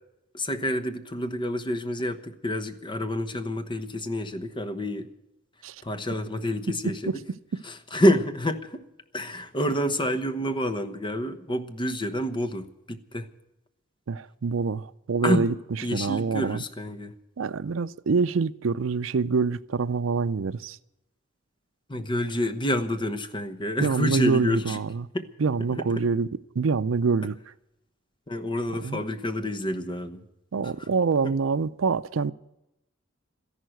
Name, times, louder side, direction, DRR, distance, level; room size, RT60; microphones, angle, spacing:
voice 1, 0.3-5.1 5.8-7.2 7.6-8.8 9.1-13.3 15.2-15.6 15.8-17.1 21.9-24.8 25.1-25.3 25.7-26.1 28.3-30.3 30.8-30.9 31.2-31.3, equal, 25° left, 1.0 m, -28 dB
voice 2, 14.1-15.5 15.9-16.6 17.4-20.8 23.8-25.1 25.4-26.3 26.6-27.4 28.8-29.0 30.5-32.3, right 5 dB, 80° right, 0.5 m, -25 dB
13.5 x 11.0 x 9.1 m
head